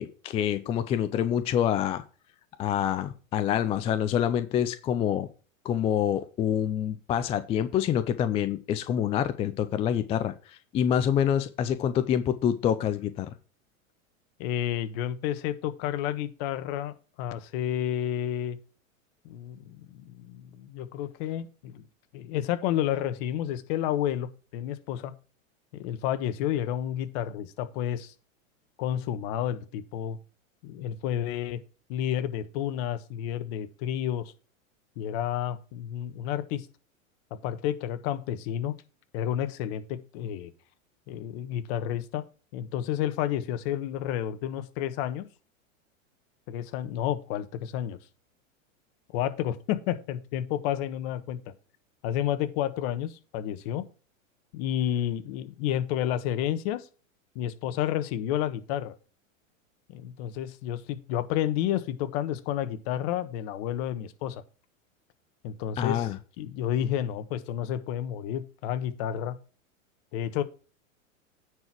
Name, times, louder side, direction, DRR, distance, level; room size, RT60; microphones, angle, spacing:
voice 1, 0.0-2.0 2.6-5.3 5.6-10.3 10.7-13.3 65.8-66.2, left 9 dB, 15° left, 11 dB, 0.4 m, -26 dB
voice 2, 14.4-18.6 19.2-21.9 22.1-25.1 25.7-28.1 28.8-30.2 30.6-31.6 31.9-34.3 35.0-36.7 37.4-38.7 39.1-40.5 41.1-42.2 42.5-45.3 46.5-48.0 49.1-51.4 52.0-53.8 54.5-56.9 57.3-58.9 59.9-64.4 65.4-69.3 70.1-70.4, left 11 dB, 50° left, 12 dB, 1.3 m, -30 dB
9.6 x 4.7 x 5.8 m, 0.36 s
hypercardioid pair, 125°, 40 cm